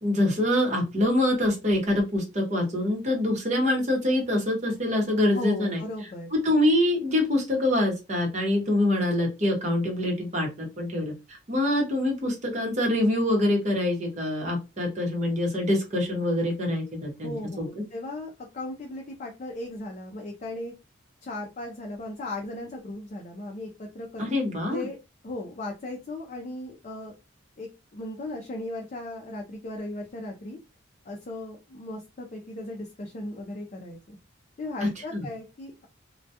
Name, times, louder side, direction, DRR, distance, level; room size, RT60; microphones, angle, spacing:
voice 1, 0.0-5.8 6.3-17.7 24.2-24.9 34.8-35.3, left 1 dB, 35° right, 0 dB, 0.8 m, -25 dB
voice 2, 5.3-6.3 17.2-20.7 21.2-24.3 24.7-25.0 25.2-27.1 27.6-30.6 31.1-34.2 34.6-35.9, left 2 dB, 40° left, 0 dB, 0.4 m, -37 dB
2.2 x 2.2 x 2.7 m, 0.26 s
head